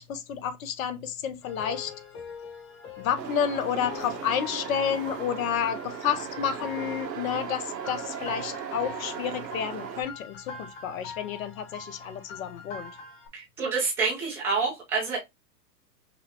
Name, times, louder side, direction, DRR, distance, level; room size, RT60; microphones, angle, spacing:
voice 1, 0.0-1.9 3.0-12.9, left 8 dB, 55° left, 0.8 m, -30 dB
sound 1, 1.4-13.3, left 4 dB, 30° left, 1.5 m, -44 dB
sound 2, 3.2-10.0, right 8 dB, 85° right, 1.1 m, -37 dB
voice 2, 13.3-15.2, right 4 dB, 5° right, 0.4 m, -27 dB
5.7 x 2.1 x 2.8 m
hypercardioid pair, 130°, 50 cm